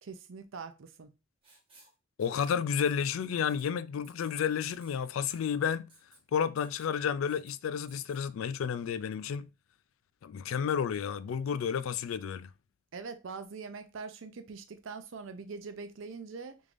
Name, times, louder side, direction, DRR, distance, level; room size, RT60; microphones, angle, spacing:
voice 1, 0.0-1.1 12.9-16.6, right 4 dB, 75° right, 0.5 m, -43 dB
Writing, 1.4-2.5 2.8-3.1 3.5-3.7 4.0-4.3 4.7-5.0 5.3-5.5 5.9-6.2 6.6-6.9 7.3-7.5 7.9-8.2, right 3 dB, 25° right, 1.1 m, -59 dB
voice 2, 2.2-5.9 6.3-9.5 10.2-12.5, left 7 dB, 85° left, 0.3 m, -31 dB
3.6 x 3.2 x 2.5 m
head